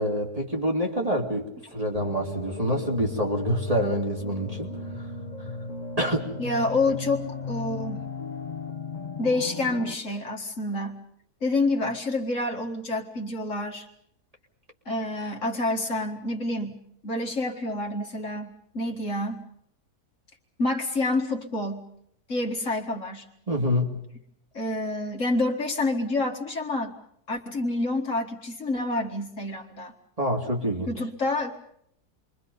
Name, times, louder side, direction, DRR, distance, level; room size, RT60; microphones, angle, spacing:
voice 1, 0.0-4.7 6.0-6.3 23.5-23.9 30.2-30.9, equal, 25° right, 1 dB, 2.7 m, -26 dB
sound 1, 1.9-9.9, left 3 dB, 30° left, 1.3 m, -35 dB
voice 2, 6.4-8.1 9.2-11.0 11.4-13.9 14.9-19.4 20.6-21.9 22.3-23.3 24.5-26.9 27.3-29.9 30.9-31.6, left 2 dB, 55° left, 1 dB, 2.2 m, -28 dB
28.5 x 23.5 x 5.5 m, 0.70 s
omnidirectional pair, 1.6 m